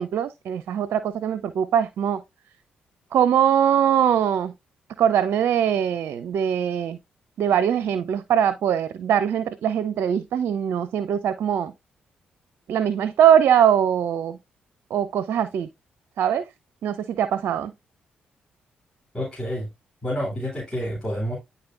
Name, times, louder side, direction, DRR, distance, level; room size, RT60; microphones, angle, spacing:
voice 1, 0.0-2.2 3.1-4.5 5.0-7.0 7.4-11.7 12.7-14.4 14.9-15.7 16.2-16.4 16.8-17.7, right 9 dB, 65° right, 0.5 m, -22 dB
voice 2, 19.1-19.7 20.0-21.4, equal, 20° left, 3.0 m, -28 dB
10.5 x 4.0 x 2.5 m
hypercardioid pair, 40°, 4 cm